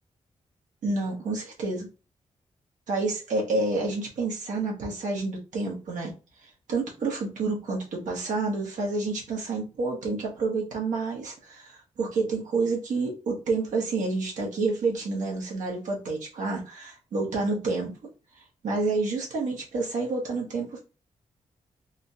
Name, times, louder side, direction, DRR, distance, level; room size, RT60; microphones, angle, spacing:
voice 1, 0.8-1.9 2.9-6.1 6.7-17.9 18.6-20.8, right 3 dB, 80° right, 1.2 m, -29 dB
3.6 x 2.3 x 2.7 m
cardioid pair, 60°, 13 cm